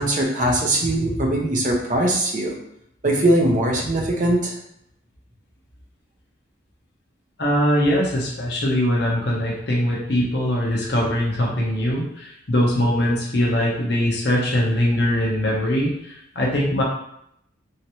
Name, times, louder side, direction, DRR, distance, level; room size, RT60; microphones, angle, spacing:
voice 1, 0.0-2.5 3.0-4.5, right 1 dB, 40° right, -1 dB, 0.7 m, -21 dB
voice 2, 7.4-16.8, equal, 55° left, -3 dB, 0.8 m, -21 dB
3.3 x 2.9 x 2.9 m, 0.74 s
head